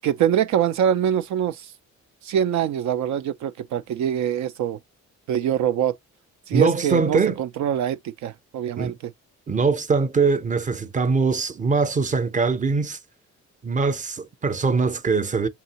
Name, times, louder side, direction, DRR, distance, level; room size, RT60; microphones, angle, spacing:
voice 1, 0.0-1.7 2.2-4.8 5.3-6.0 6.5-8.9, right 10 dB, 70° right, 0.5 m, -24 dB
voice 2, 6.5-7.4 8.8-8.9 9.5-13.0 13.6-15.5, right 4 dB, 25° right, 0.7 m, -22 dB
5.3 x 2.8 x 2.8 m
cardioid pair, 90°, 30 cm